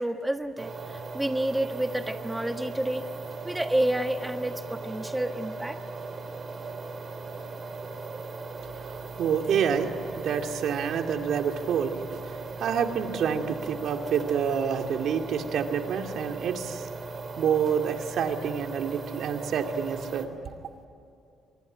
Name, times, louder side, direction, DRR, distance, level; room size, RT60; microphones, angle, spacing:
voice 1, 0.0-3.1 3.4-5.8, right 1 dB, 10° right, 7 dB, 1.4 m, -29 dB
sound 1, 0.6-20.3, right 4 dB, 40° right, 3.0 m, -38 dB
voice 2, 8.7-16.9 17.4-20.4, right 7 dB, 70° right, 5 dB, 2.3 m, -28 dB
24.5 x 24.0 x 9.9 m, 2.6 s
cardioid pair, 90°, 0 cm